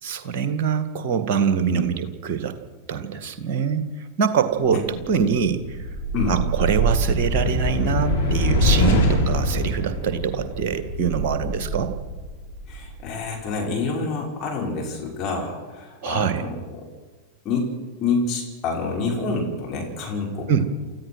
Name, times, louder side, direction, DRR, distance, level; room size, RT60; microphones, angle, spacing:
voice 1, 0.0-2.6 2.9-5.8 6.3-12.0 16.0-16.4 20.5-20.7, right 7 dB, 45° right, 10 dB, 1.9 m, -24 dB
sound 1, 5.0-13.2, equal, 65° left, 4.6 m, -24 dB
voice 2, 12.7-16.9 17.4-17.7 18.0-20.5, left 4 dB, 30° left, -2 dB, 5.8 m, -27 dB
29.0 x 14.0 x 6.3 m, 1.4 s
figure-of-eight pair, 90°, 0 cm